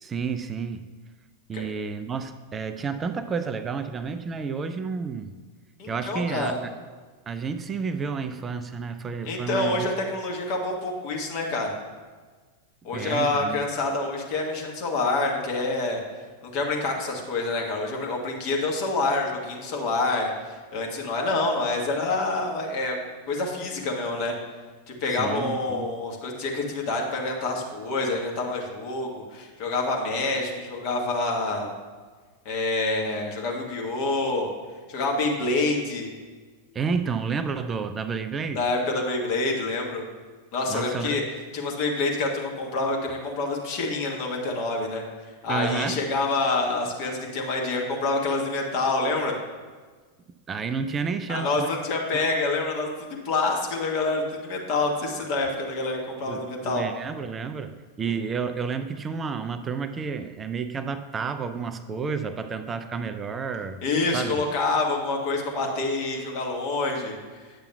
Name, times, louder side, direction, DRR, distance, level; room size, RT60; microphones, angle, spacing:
voice 1, 0.0-0.8 1.5-5.3 5.9-6.7 7.3-9.8 12.9-13.6 25.1-25.9 36.7-38.6 40.7-41.2 45.5-46.0 50.5-51.7 52.1-52.2 56.3-63.8 64.1-64.4, right 5 dB, 20° right, 10 dB, 0.3 m, -30 dB
voice 2, 5.8-6.6 9.2-11.7 12.8-16.0 16.4-23.0 23.3-24.3 25.0-31.7 32.4-34.5 34.9-36.1 38.5-40.0 40.5-41.2 41.5-45.0 45.4-49.4 51.3-52.9 53.2-56.9 58.1-58.2 63.8-67.2, left 2 dB, 45° left, 0 dB, 1.2 m, -27 dB
9.6 x 6.8 x 2.2 m, 1.4 s
figure-of-eight pair, 90°, 0 cm